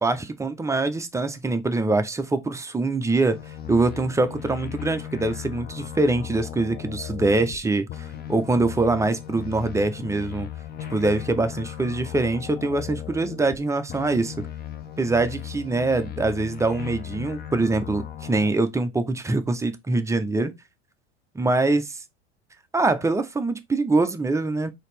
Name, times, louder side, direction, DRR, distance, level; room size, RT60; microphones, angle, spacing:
voice 1, 0.0-3.4 3.7-7.9 8.3-10.5 10.9-14.3 15.0-20.5 21.3-21.8 22.7-24.7, right 2 dB, 10° right, 0.5 m, -24 dB
sound 1, 3.3-7.6 7.9-13.6 13.9-18.5, left 10 dB, 30° left, 0.7 m, -37 dB
4.0 x 2.8 x 3.2 m
hypercardioid pair, 85°, 34 cm